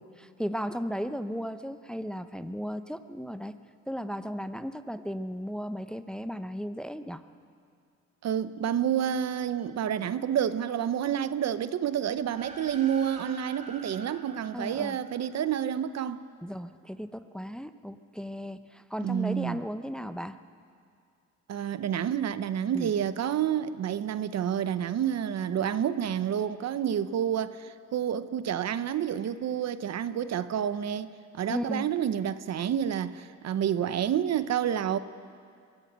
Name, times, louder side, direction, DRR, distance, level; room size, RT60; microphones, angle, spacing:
voice 1, 0.0-3.6 3.9-7.2 14.5-15.0 16.4-20.4 22.7-22.9 31.5-31.8, equal, 5° left, 0.8 m, -35 dB
voice 2, 8.2-16.2 19.0-19.6 21.5-35.0, right 9 dB, 60° right, 0.8 m, -29 dB
sound 1, 12.1-15.8, right 2 dB, 25° right, 2.5 m, -47 dB
24.5 x 16.5 x 8.0 m
cardioid pair, 90°, 30 cm